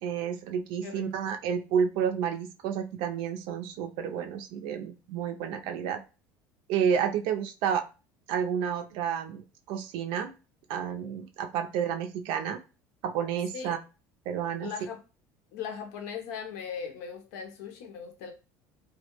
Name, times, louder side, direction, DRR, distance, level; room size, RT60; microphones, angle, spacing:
voice 1, 0.0-6.0 6.7-7.8 8.3-9.4 9.7-10.3 10.7-12.6 13.0-13.8 14.3-14.7, right 8 dB, 70° right, 0.4 m, -30 dB
voice 2, 14.6-15.0 15.5-18.3, left 7 dB, 85° left, 0.7 m, -38 dB
2.2 x 2.1 x 2.9 m
supercardioid pair, 110°, 9 cm